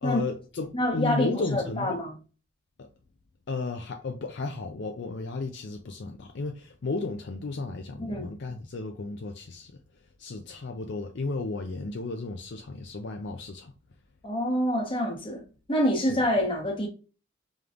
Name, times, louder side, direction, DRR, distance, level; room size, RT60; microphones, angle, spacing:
voice 1, 0.0-2.0 2.8-2.9 3.5-13.7 16.1-16.2, left 3 dB, 55° left, 0.4 m, -34 dB
voice 2, 0.7-2.1 8.0-8.3 14.2-16.9, equal, 25° left, 1.0 m, -27 dB
5.1 x 3.0 x 2.5 m
head